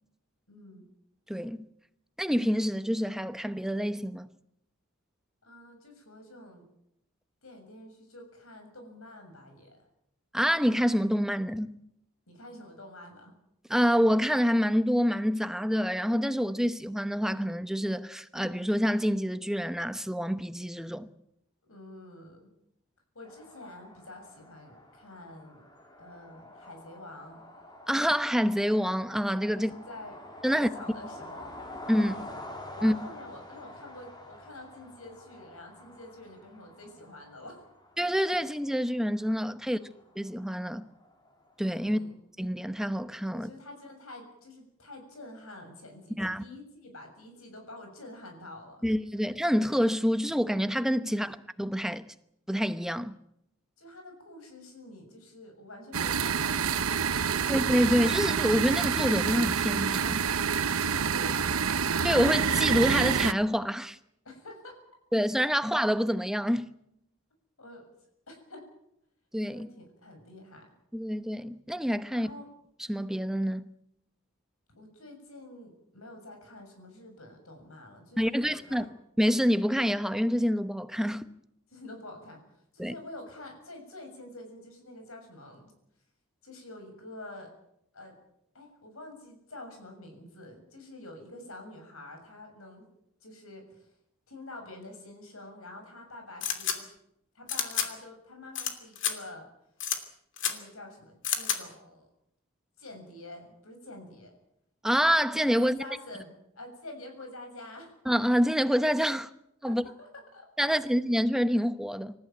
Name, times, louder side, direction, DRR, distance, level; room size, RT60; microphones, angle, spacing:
voice 1, 0.5-0.9 5.4-6.7 7.4-9.8 12.3-13.4 21.7-22.5 23.2-25.6 26.0-27.4 29.5-30.2 30.5-31.6 32.0-32.3 32.8-37.6 39.7-39.9 41.8-42.2 43.3-48.9 51.1-51.3 53.8-57.5 60.7-61.9 64.3-64.8 67.6-67.9 68.3-68.6 69.5-70.7 72.1-72.5 74.8-78.9 81.7-85.7 86.4-87.5 87.9-88.1 88.5-92.9 93.2-93.9 94.3-96.9 97.4-99.5 100.5-102.1 102.8-104.3 105.6-107.9 109.6-110.8, left 1 dB, 85° left, 7.0 m, -47 dB
voice 2, 2.2-4.3 10.3-11.8 13.7-21.1 27.9-29.7 30.4-30.7 31.9-32.2 32.8-32.9 38.0-39.8 40.2-40.9 41.6-42.0 42.4-43.5 46.2-46.4 48.8-52.0 52.5-53.1 57.5-60.2 62.0-64.0 65.1-66.7 69.3-69.7 70.9-72.3 72.9-73.7 78.2-78.8 79.2-81.3 82.8-82.9 104.8-105.8 108.1-109.3 109.6-109.8 110.6-112.1, equal, ahead, 0.9 m, -27 dB
sound 1, 23.2-41.8, left 1 dB, 20° left, 3.6 m, -48 dB
sound 2, 55.9-63.3, right 6 dB, 85° right, 0.9 m, -27 dB
Gun Cocking Sound, 96.4-96.8 97.5-97.9 98.5-98.7 99.0-99.1 99.8-100.0 100.4-100.5 101.2-101.6, left 9 dB, 60° left, 2.8 m, -29 dB
26.5 x 14.5 x 9.3 m
head